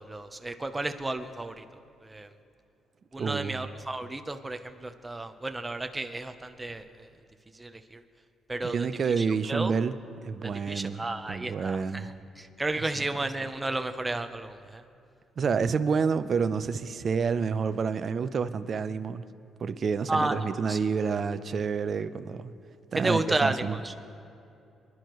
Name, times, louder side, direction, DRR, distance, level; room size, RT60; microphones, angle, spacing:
voice 1, 0.0-1.6 2.0-2.3 3.1-7.1 7.5-8.0 8.5-9.8 10.4-14.8 20.1-20.4 20.7-20.8 22.9-23.9, right 2 dB, 15° right, 8 dB, 0.8 m, -32 dB
voice 2, 3.2-3.6 8.6-9.9 10.2-11.0 11.3-12.1 15.4-19.2 19.6-22.5 22.9-23.8, right 5 dB, 50° right, 12 dB, 0.6 m, -28 dB
25.0 x 11.0 x 3.1 m, 2.6 s
cardioid pair, 90°, 0 cm